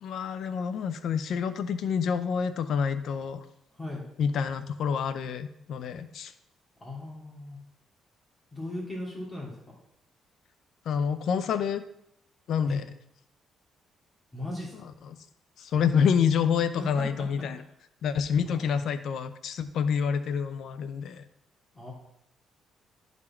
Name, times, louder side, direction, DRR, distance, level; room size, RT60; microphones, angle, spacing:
voice 1, 0.0-3.4 4.2-6.3 10.9-11.8 12.5-12.8 15.0-15.2 15.6-17.6 18.0-21.2, left 7 dB, 70° left, 11 dB, 0.5 m, -28 dB
voice 2, 6.8-7.6 8.5-9.5 12.7-12.8 14.3-14.7 16.8-17.1 18.4-18.6 21.7-21.9, left 2 dB, 20° left, -4 dB, 2.6 m, -37 dB
12.0 x 4.2 x 4.4 m, 0.76 s
cardioid pair, 90°, 0 cm